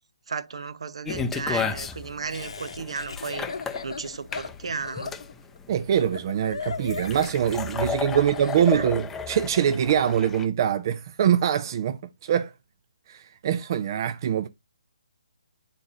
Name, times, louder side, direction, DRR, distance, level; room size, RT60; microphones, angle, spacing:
voice 1, 0.3-3.5 3.8-5.2 8.1-8.2 8.6-8.9, right 5 dB, 70° right, 0.8 m, -34 dB
sound 1, 1.1-10.4, left 6 dB, 10° left, 0.5 m, -33 dB
Laughter, 2.3-8.7, left 5 dB, 70° left, 0.8 m, -37 dB
voice 2, 5.7-12.5 13.1-14.5, right 9 dB, 40° right, 0.5 m, -24 dB
9.6 x 4.1 x 2.5 m
hypercardioid pair, 145°, 3 cm